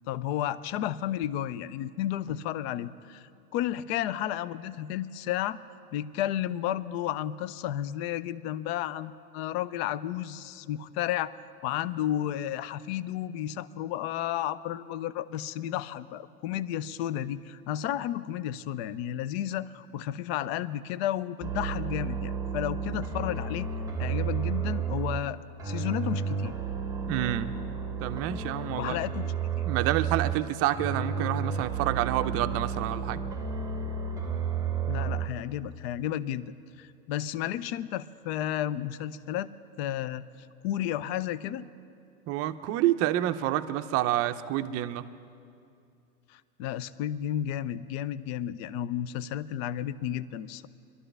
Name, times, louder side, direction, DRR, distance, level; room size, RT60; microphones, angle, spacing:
voice 1, 0.1-5.6 5.9-11.3 11.6-23.7 24.0-26.6 28.8-29.7 34.8-36.5 36.8-39.5 39.8-40.2 40.6-41.7 46.3-50.7, left 11 dB, 45° left, 17 dB, 0.5 m, -32 dB
sound 1, 21.4-25.3 25.6-30.4 30.7-35.3, right 6 dB, 10° right, 1.0 m, -32 dB
voice 2, 27.1-27.5 28.0-29.0 29.6-33.2 42.3-45.1, right 13 dB, 30° right, 10 dB, 0.6 m, -28 dB
23.0 x 12.5 x 3.4 m, 2.5 s
hypercardioid pair, 100°, 45 cm